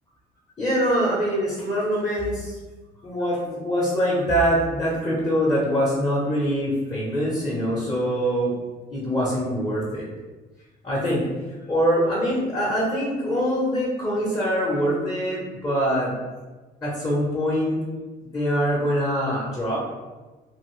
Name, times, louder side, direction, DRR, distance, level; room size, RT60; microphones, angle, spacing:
voice 1, 0.6-2.6 3.0-8.5 8.9-10.1 10.8-11.2 11.7-16.1 16.8-17.8 18.2-19.8, equal, 20° left, -7 dB, 0.9 m, -24 dB
2.8 x 2.5 x 3.1 m, 1.2 s
cardioid pair, 110°, 17 cm